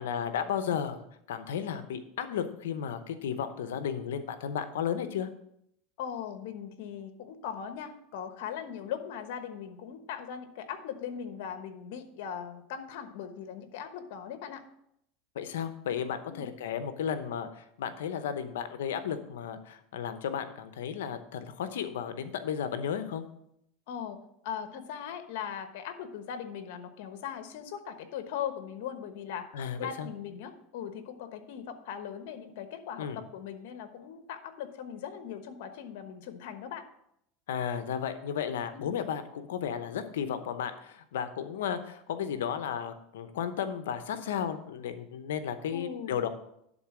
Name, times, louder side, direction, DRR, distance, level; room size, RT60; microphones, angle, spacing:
voice 1, 0.0-5.3 15.3-23.2 29.5-30.1 33.0-33.2 37.5-46.3, left 8 dB, 90° left, 10 dB, 0.8 m, -34 dB
voice 2, 6.0-14.6 16.3-16.5 23.9-24.2 24.4-29.5 29.8-36.8 38.7-38.9 45.7-46.3, left 8 dB, 70° left, 9 dB, 1.1 m, -39 dB
11.5 x 4.0 x 6.0 m, 0.75 s
supercardioid pair, 120°, 0 cm